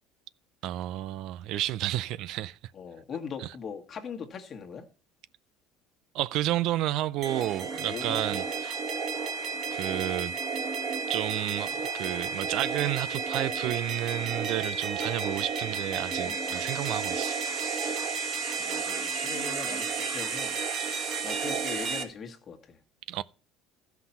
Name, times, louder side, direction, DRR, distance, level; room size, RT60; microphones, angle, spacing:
voice 1, 0.6-2.6 3.4-3.5 6.1-8.8 9.7-10.3 11.1-17.4 23.1-23.2, right 14 dB, 60° right, 0.4 m, -31 dB
voice 2, 2.7-4.9 7.8-8.5 16.2-16.7 18.6-20.6 21.2-22.8, left 6 dB, 35° left, 1.7 m, -40 dB
sound 1, 7.2-22.0, right 5 dB, 40° right, 1.9 m, -32 dB
13.5 x 5.9 x 5.6 m
cardioid pair, 130°, 0 cm